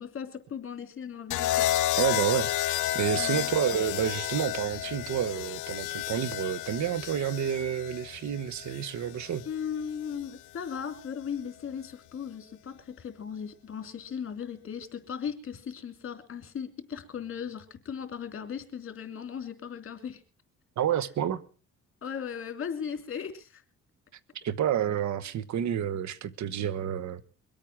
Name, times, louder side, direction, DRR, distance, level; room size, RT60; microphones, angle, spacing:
voice 1, 0.0-1.7 3.1-3.5 9.4-20.2 22.0-23.6, left 7 dB, 45° left, 3.0 m, -37 dB
sound 1, 1.3-9.4 10.7-11.0, left 14 dB, 85° left, 0.7 m, -31 dB
voice 2, 2.0-9.4 20.8-21.4 24.4-27.2, right 10 dB, 70° right, 1.2 m, -29 dB
23.0 x 8.9 x 5.9 m
cardioid pair, 90°, 30 cm